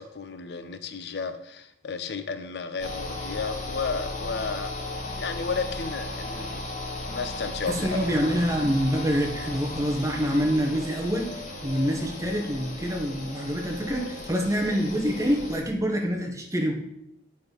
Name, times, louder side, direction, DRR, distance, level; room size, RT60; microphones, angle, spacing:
voice 1, 0.0-6.6 7.1-8.3 12.0-12.3 14.0-14.2, left 5 dB, 65° left, 10 dB, 0.5 m, -33 dB
sound 1, 2.8-15.6, left 2 dB, 45° left, 1.4 m, -36 dB
voice 2, 7.7-11.3 11.6-16.7, equal, 20° right, 1 dB, 1.0 m, -26 dB
8.8 x 5.2 x 3.9 m, 0.78 s
head